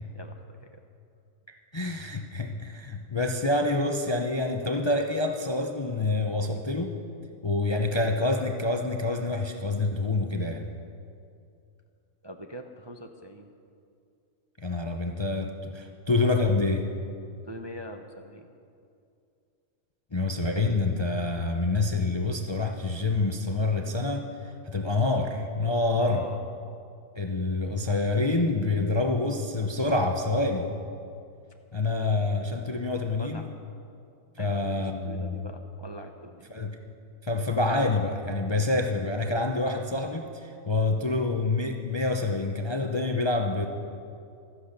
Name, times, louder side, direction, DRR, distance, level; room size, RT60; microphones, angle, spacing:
voice 1, 0.1-0.8 12.2-13.5 17.5-18.5 26.0-26.4 33.1-33.5 34.4-36.5, right 1 dB, 25° right, 4 dB, 0.6 m, -42 dB
voice 2, 1.7-7.0 7.4-10.7 14.6-16.9 20.1-26.2 27.2-30.7 31.7-33.5 34.4-35.5 36.5-36.7 37.2-43.7, left 2 dB, 25° left, 4 dB, 0.6 m, -27 dB
15.5 x 13.0 x 6.7 m, 2.5 s
omnidirectional pair, 1.5 m